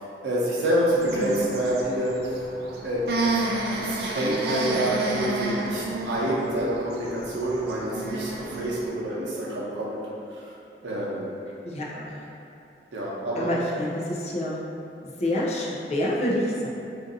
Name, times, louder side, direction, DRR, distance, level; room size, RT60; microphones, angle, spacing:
voice 1, 0.2-2.2 2.8-3.1 3.8-10.0 10.3-10.4 10.8-11.3 12.9-13.5, right 1 dB, 85° right, -6 dB, 0.7 m, -27 dB
sound 1, 0.9-8.9, right 2 dB, 60° right, 0.3 m, -31 dB
voice 2, 11.6-12.3 13.4-14.6 15.0-16.7, left 1 dB, 35° left, -4 dB, 0.4 m, -27 dB
2.5 x 2.5 x 3.8 m, 2.7 s
head